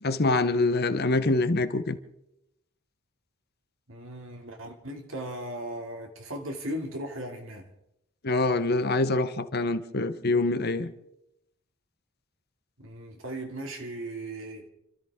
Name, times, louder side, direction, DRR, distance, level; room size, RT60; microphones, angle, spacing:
voice 1, 0.0-2.0 8.2-10.9, left 2 dB, 45° left, 0.9 m, -25 dB
voice 2, 3.9-7.7 12.8-14.7, right 1 dB, 65° right, 2.6 m, -37 dB
29.0 x 13.5 x 3.7 m
head